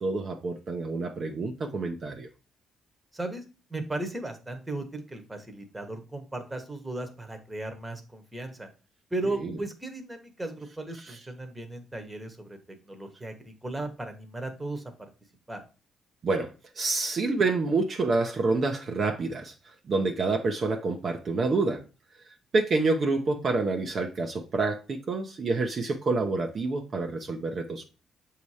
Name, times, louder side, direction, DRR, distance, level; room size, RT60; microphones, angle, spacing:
voice 1, 0.0-2.3 9.4-9.5 11.1-11.2 16.2-19.5 19.9-21.8 22.5-27.8, right 3 dB, 50° right, 0.8 m, -28 dB
voice 2, 3.1-3.4 3.7-8.7 9.1-12.6 12.8-14.8 15.5-15.6, right 2 dB, 15° right, 1.2 m, -36 dB
6.8 x 2.8 x 4.8 m
cardioid pair, 90°, 0 cm